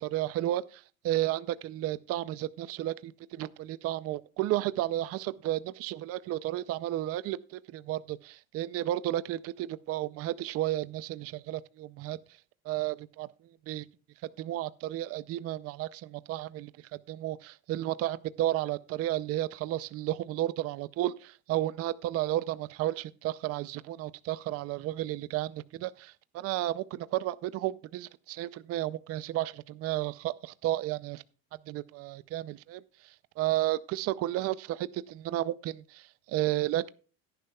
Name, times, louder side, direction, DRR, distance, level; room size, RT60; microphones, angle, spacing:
voice 1, 0.0-12.2 12.7-13.3 13.7-13.9 14.4-16.7 17.1-31.2 31.7-32.8 33.4-36.9, right 14 dB, 45° right, 0.5 m, -32 dB
16.5 x 10.5 x 2.3 m
cardioid pair, 155°, 35 cm